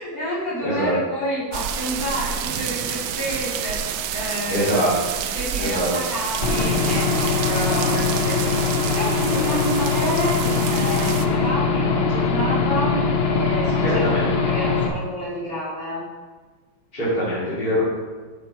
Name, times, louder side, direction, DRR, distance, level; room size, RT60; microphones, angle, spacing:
voice 1, 0.0-4.9 5.3-8.6 8.9-16.0, equal, 45° left, -9 dB, 3.2 m, -29 dB
voice 2, 0.6-0.9 4.5-4.9 5.6-5.9 13.8-14.3 16.9-17.8, equal, 25° left, -9 dB, 2.5 m, -23 dB
sound 1, 1.5-11.3, right 9 dB, 75° right, 1.1 m, -29 dB
Aircraft / Engine, 6.4-14.9, left 4 dB, 75° left, 0.5 m, -22 dB
7.2 x 7.2 x 4.2 m, 1.4 s
omnidirectional pair, 2.1 m